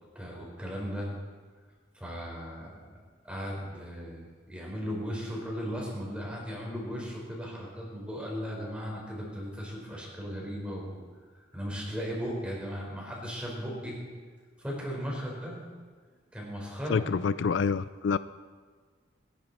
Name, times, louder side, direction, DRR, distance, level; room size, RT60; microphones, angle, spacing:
voice 1, 0.1-1.1 1.9-2.8 3.2-10.9 11.5-14.0 14.6-15.6 16.3-17.0, equal, 5° right, -3 dB, 4.8 m, -36 dB
voice 2, 16.9-18.2, left 5 dB, 75° left, 15 dB, 0.4 m, -27 dB
26.5 x 11.0 x 4.3 m, 1.5 s
head